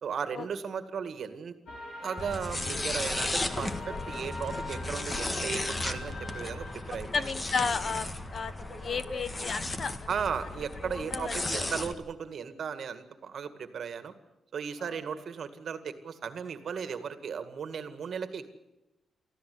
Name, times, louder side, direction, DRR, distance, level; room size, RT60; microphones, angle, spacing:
voice 1, 0.0-1.6 2.0-7.3 10.1-14.1 14.5-18.5, right 6 dB, 50° right, 10 dB, 2.0 m, -36 dB
sound 1, 1.7-6.9, left 2 dB, 60° left, 6.6 m, -43 dB
sound 2, 2.2-11.9, left 2 dB, 20° left, 1.7 m, -35 dB
voice 2, 7.1-8.5 8.8-10.1 11.1-11.4 14.8-15.0, left 5 dB, 40° left, 14 dB, 1.0 m, -32 dB
24.5 x 15.0 x 9.6 m, 0.95 s
wide cardioid pair, 165°, 0 cm